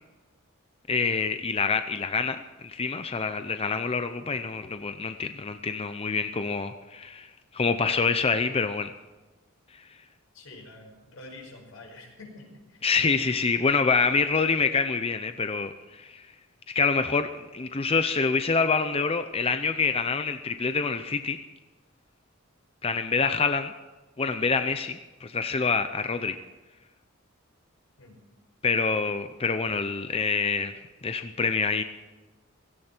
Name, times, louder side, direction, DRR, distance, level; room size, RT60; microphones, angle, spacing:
voice 1, 0.9-8.9 12.8-16.2 16.7-21.4 22.8-23.7 24.2-26.4 28.6-31.8, left 5 dB, 30° left, 9 dB, 0.6 m, -26 dB
voice 2, 10.3-13.6 28.0-28.2, left 2 dB, 80° left, 2 dB, 5.3 m, -47 dB
17.0 x 16.0 x 4.5 m, 1.2 s
head